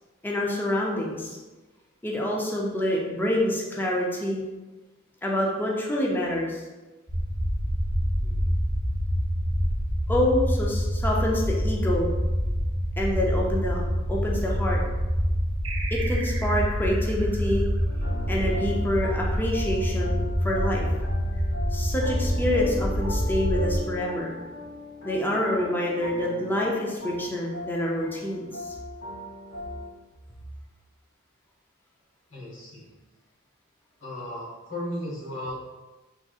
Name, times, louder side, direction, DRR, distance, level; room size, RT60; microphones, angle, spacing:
voice 1, 0.2-1.4 2.0-4.4 5.2-6.6 10.1-12.1 13.0-13.8 14.1-14.8 15.9-17.7 18.3-20.9 21.7-24.4 25.0-28.8, left 1 dB, 10° left, -2 dB, 0.4 m, -27 dB
sound 1, 7.1-23.8, equal, 20° right, 0.7 m, -26 dB
voice 2, 8.2-8.6 32.3-32.8 34.0-35.6, left 1 dB, 80° left, -8 dB, 1.5 m, -36 dB
sound 2, 15.6-18.7, right 4 dB, 75° right, 0.5 m, -39 dB
sound 3, 17.8-29.9, left 2 dB, 60° left, 1.2 m, -39 dB
3.4 x 2.8 x 2.3 m, 1.2 s
head